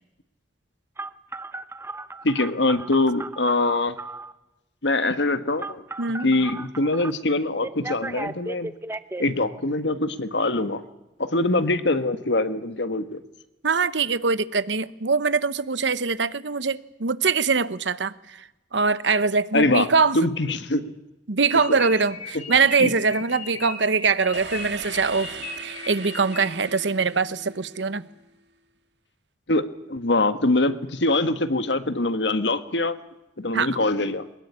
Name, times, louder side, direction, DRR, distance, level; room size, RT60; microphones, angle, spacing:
Telephone, 1.0-4.3 5.6-7.1 7.6-9.2, right 2 dB, 15° right, 0.8 m, -35 dB
voice 1, 2.2-4.0 4.8-5.8 6.2-8.7 9.2-10.8 11.2-13.2 19.5-19.9 20.1-20.8 21.7-21.8 22.8-22.9 29.5-33.0 33.4-34.2, left 2 dB, 75° left, 11 dB, 1.5 m, -23 dB
voice 2, 6.0-6.3 13.6-18.5 18.7-20.2 21.3-25.3 25.6-28.0 33.5-33.7, right 4 dB, 90° right, 15 dB, 1.1 m, -23 dB
sound 1, 21.5-26.8, left 5 dB, 45° left, 5.2 m, -38 dB
sound 2, 24.3-28.2, right 5 dB, 70° right, 1.7 m, -39 dB
22.0 x 20.5 x 9.9 m, 1.0 s
head